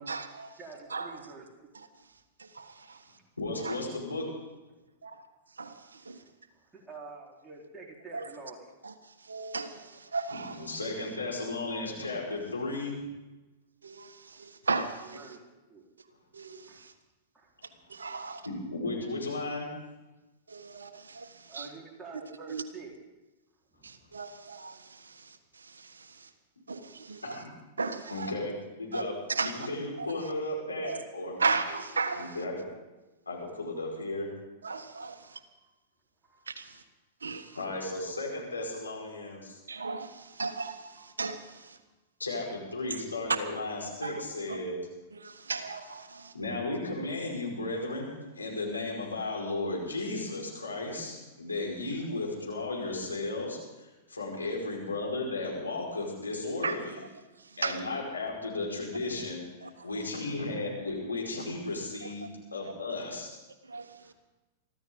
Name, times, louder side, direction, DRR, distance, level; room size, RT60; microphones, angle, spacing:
voice 1, 0.1-0.5 0.9-1.1 2.4-3.0 3.6-3.8 5.0-5.2 5.6-6.2 8.1-8.3 8.8-8.9 9.2-10.7 13.8-15.3 16.3-16.9 17.9-18.4 20.5-21.7 22.5-22.6 23.8-26.3 26.7-27.4 27.8-28.3 28.9-29.0 29.3-29.7 30.0-30.1 30.8-31.0 31.4-32.4 34.6-35.4 36.5-36.8 37.2-37.5 39.7-41.8 44.0-44.2 45.2-46.3 56.6-56.8 57.6-57.8 59.6-59.7 62.0-62.1 63.7-63.9, right 4 dB, 80° right, 9 dB, 1.3 m, -36 dB
voice 2, 0.6-1.7 6.1-8.7 11.3-11.5 14.3-14.5 15.1-15.4 15.7-15.8 16.7-16.8 17.3-17.5 18.1-18.3 20.7-20.9 21.5-22.9 23.7-23.9 33.8-33.9 35.1-35.7 36.2-36.8 37.4-37.7 40.2-40.3 40.9-41.0 51.8-52.1 54.3-54.6 63.1-63.2 64.0-64.1, right 4 dB, 15° right, -3 dB, 4.3 m, -49 dB
voice 3, 3.4-4.2 10.4-12.9 18.4-19.7 27.2-27.5 28.1-31.4 32.2-32.7 33.2-34.3 37.5-39.6 42.2-44.7 46.3-57.0 57.6-63.3, left 2 dB, 85° left, -3 dB, 5.1 m, -35 dB
24.0 x 14.5 x 3.9 m, 1.1 s
figure-of-eight pair, 100°, 0 cm